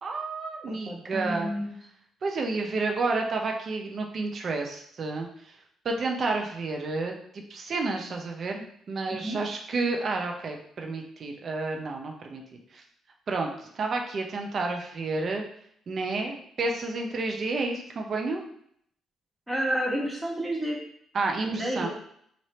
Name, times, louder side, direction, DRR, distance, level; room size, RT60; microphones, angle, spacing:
voice 1, 0.0-1.5 2.2-5.6 5.8-12.8 13.3-15.4 15.9-18.4 21.1-21.9, right 3 dB, 50° right, 2 dB, 0.6 m, -30 dB
voice 2, 0.7-1.7 9.1-9.4 19.5-20.8 21.4-21.9, equal, 5° right, -3 dB, 1.3 m, -30 dB
3.2 x 2.6 x 4.3 m, 0.67 s
cardioid pair, 90°, 0 cm